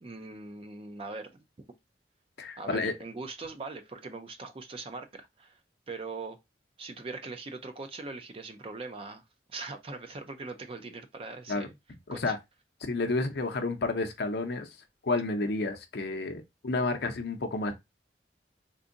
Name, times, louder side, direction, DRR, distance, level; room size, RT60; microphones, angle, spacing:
voice 1, 0.0-1.4 2.6-5.6 5.9-6.4 6.8-9.2 9.5-11.8 12.1-12.4, right 3 dB, 30° right, 0.5 m, -41 dB
voice 2, 2.4-2.9 11.5-11.7 12.1-12.4 12.8-14.7 15.0-17.7, left 3 dB, 60° left, 0.6 m, -30 dB
3.7 x 2.6 x 2.5 m
head